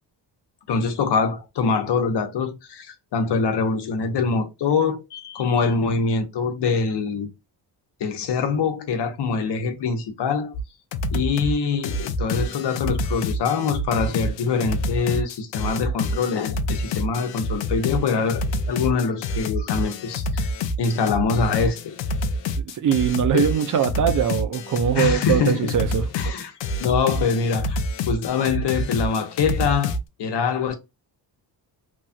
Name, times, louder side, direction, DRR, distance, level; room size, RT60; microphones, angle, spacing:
voice 1, 0.7-7.3 8.0-10.5 11.1-20.5 20.8-22.0 23.3-23.5 24.9-25.7 26.1-27.8 28.1-30.8, left 5 dB, 70° left, 0.9 m, -24 dB
sound 1, 10.5-10.6 10.9-11.5 11.8-30.0, left 1 dB, 90° left, 0.6 m, -27 dB
voice 2, 22.6-26.0, right 8 dB, 50° right, 0.5 m, -22 dB
3.0 x 2.3 x 2.7 m
cardioid pair, 115°, 42 cm